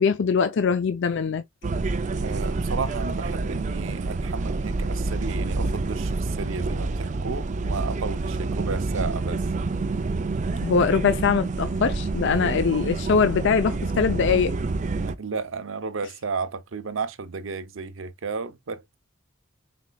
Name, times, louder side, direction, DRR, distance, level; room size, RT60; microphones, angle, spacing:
voice 1, 0.0-1.4 10.6-14.5, left 5 dB, 65° left, 0.4 m, -22 dB
sound 1, 1.6-15.1, right 3 dB, 40° right, 0.5 m, -28 dB
voice 2, 2.2-9.4 15.0-19.0, right 4 dB, 75° right, 0.7 m, -33 dB
4.3 x 4.3 x 2.3 m
head